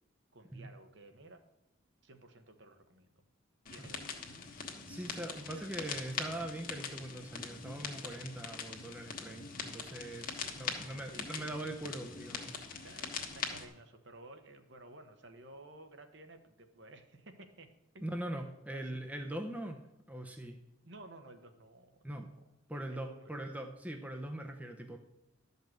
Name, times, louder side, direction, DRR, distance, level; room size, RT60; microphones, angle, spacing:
voice 1, 0.3-1.4 2.0-3.2 3.7-4.2 5.5-5.7 6.9-7.0 10.1-11.5 12.8-13.1 13.3-17.7 17.9-18.3 18.7-19.0 20.8-22.1 22.7-23.5, right 2 dB, 55° right, 7 dB, 1.1 m, -54 dB
sound 1, 3.7-13.7, left 5 dB, 40° left, 1.3 m, -42 dB
voice 2, 4.9-12.6 18.0-19.8 20.1-20.6 22.0-22.3 22.7-25.0, right 1 dB, 5° right, 3 dB, 0.7 m, -42 dB
12.0 x 5.5 x 7.6 m, 0.94 s
head